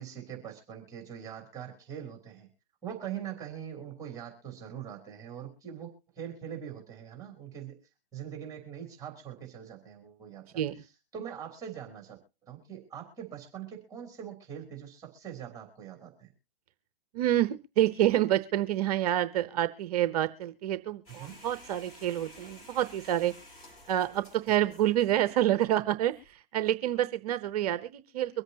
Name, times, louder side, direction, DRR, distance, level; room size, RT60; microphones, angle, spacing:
voice 1, 0.0-2.5 2.8-5.9 6.2-7.8 8.1-10.5 11.1-12.2 12.5-16.3 21.2-21.4 24.6-24.7, right 9 dB, 10° right, 2 dB, 3.2 m, -42 dB
voice 2, 17.1-23.3 23.9-28.4, right 12 dB, 40° right, 13 dB, 0.8 m, -28 dB
sound 1, 21.1-26.3, left 1 dB, 40° left, 6.7 m, -53 dB
24.0 x 8.1 x 2.8 m, 0.32 s
hypercardioid pair, 135°, 30 cm